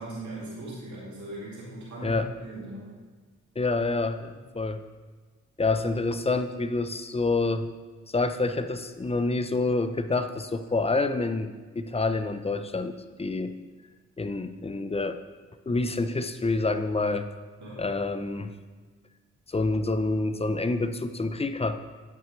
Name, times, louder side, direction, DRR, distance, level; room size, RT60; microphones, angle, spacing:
voice 1, 0.0-2.9 15.6-15.8 17.6-17.8, right 1 dB, 70° right, -7 dB, 2.3 m, -39 dB
voice 2, 3.6-4.8 5.6-7.7 8.1-13.5 14.2-15.2 15.7-17.3 17.8-18.5 19.5-21.8, left 3 dB, 20° left, 10 dB, 0.5 m, -27 dB
8.7 x 5.8 x 3.2 m, 1.4 s
supercardioid pair, 45°, 30 cm